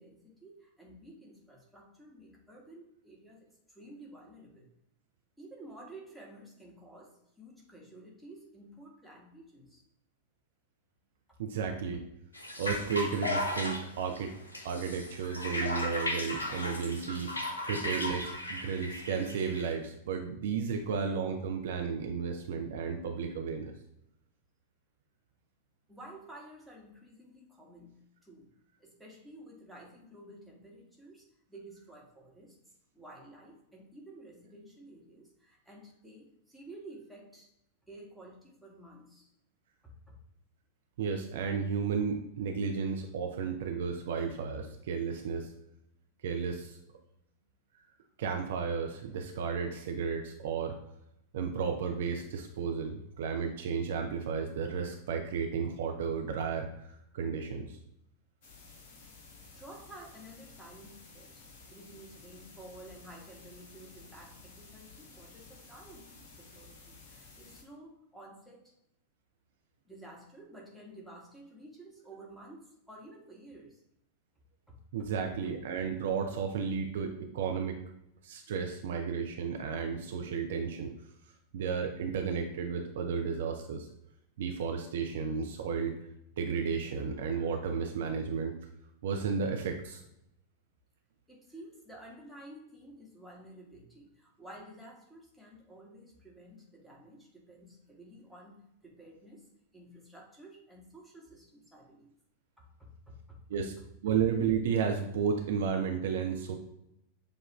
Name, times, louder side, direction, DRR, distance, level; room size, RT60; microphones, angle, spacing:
voice 1, 0.0-4.7 5.4-9.8 11.3-11.4 25.9-28.5 28.8-32.6 32.9-37.5 37.8-39.3 39.8-40.2 59.5-61.4 61.7-68.7 69.8-73.8 74.7-75.1 91.3-102.1 102.6-103.4 104.1-104.2, right 1 dB, ahead, -4 dB, 1.4 m, -52 dB
voice 2, 11.4-12.0 12.6-14.3 14.6-17.3 17.7-23.7 41.0-45.5 46.2-46.8 48.2-50.7 51.3-56.7 57.1-57.7 74.9-77.8 78.2-80.9 81.5-83.9 84.4-85.9 86.4-88.5 89.0-90.0 103.5-103.7 104.0-106.6, right 6 dB, 60° right, 4 dB, 0.5 m, -33 dB
sound 1, 12.3-19.7, left 1 dB, 80° left, 0.7 m, -36 dB
sound 2, 58.4-67.6, left 3 dB, 50° left, 1.1 m, -54 dB
6.8 x 2.5 x 3.0 m, 0.81 s
figure-of-eight pair, 90°, 0 cm